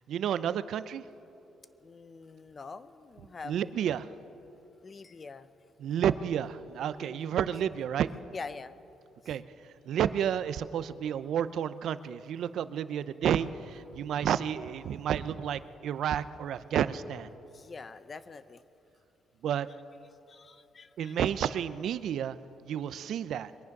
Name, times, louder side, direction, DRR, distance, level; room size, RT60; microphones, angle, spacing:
voice 1, 0.1-1.0 3.4-4.1 5.8-8.1 9.3-17.3 19.4-19.7 21.0-22.4 22.6-23.5, right 9 dB, 70° right, 14 dB, 0.5 m, -31 dB
voice 2, 1.8-3.9 4.8-5.5 7.0-7.4 8.3-8.7 9.2-9.3 17.4-18.6 20.3-21.2, left 4 dB, 35° left, 14 dB, 0.7 m, -45 dB
22.5 x 9.5 x 5.9 m, 2.9 s
cardioid pair, 90°, 0 cm